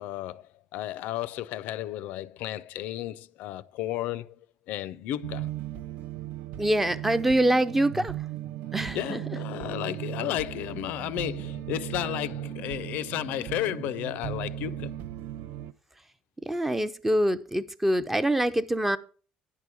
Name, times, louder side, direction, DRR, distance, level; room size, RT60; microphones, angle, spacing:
voice 1, 0.0-4.4 4.7-5.5 8.9-15.0, left 13 dB, 70° left, 0.4 m, -33 dB
sound 1, 5.2-15.7, right 13 dB, 75° right, 0.4 m, -37 dB
voice 2, 6.6-8.1 8.7-9.2 16.5-19.0, right 1 dB, 10° right, 0.4 m, -25 dB
10.0 x 4.7 x 6.8 m
cardioid pair, 165°, 3 cm